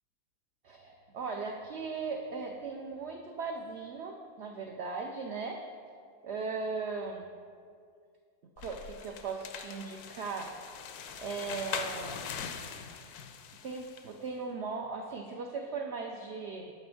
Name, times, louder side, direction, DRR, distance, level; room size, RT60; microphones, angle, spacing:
voice 1, 0.6-5.6 6.2-7.2 8.6-10.5 11.2-12.3 13.6-16.7, right 4 dB, 60° right, 2 dB, 0.7 m, -38 dB
sound 1, 8.6-14.1, left 7 dB, 80° left, 1.1 m, -42 dB
7.0 x 5.1 x 6.9 m, 2.2 s
omnidirectional pair, 1.6 m